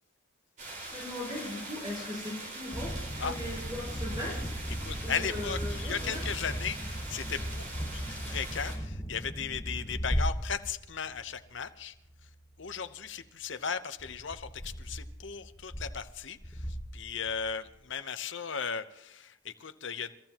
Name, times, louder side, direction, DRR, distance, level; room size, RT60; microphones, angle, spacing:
sound 1, 0.6-8.8, right 2 dB, 40° right, 4.8 m, -43 dB
voice 1, 0.7-4.5 5.0-6.2, left 1 dB, 20° right, -4 dB, 5.4 m, -39 dB
sound 2, 2.7-11.6 12.0-12.4 12.7-12.8 14.0-17.7, equal, 15° left, 1.2 m, -37 dB
voice 2, 4.8-11.9 12.6-20.1, left 6 dB, 65° left, 11 dB, 0.9 m, -36 dB
29.5 x 15.0 x 3.0 m, 0.83 s
head